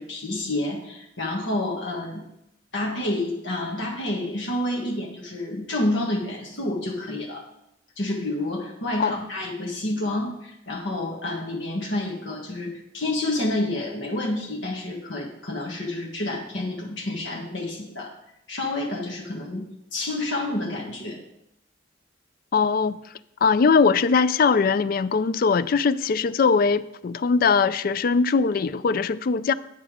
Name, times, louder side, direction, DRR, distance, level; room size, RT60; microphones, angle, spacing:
voice 1, 0.0-2.3 2.7-7.4 8.0-18.1 18.5-21.2, left 1 dB, 70° left, 1.5 m, -29 dB
voice 2, 22.5-23.0 23.4-29.5, left 5 dB, 45° left, 0.3 m, -21 dB
9.1 x 6.7 x 4.9 m
head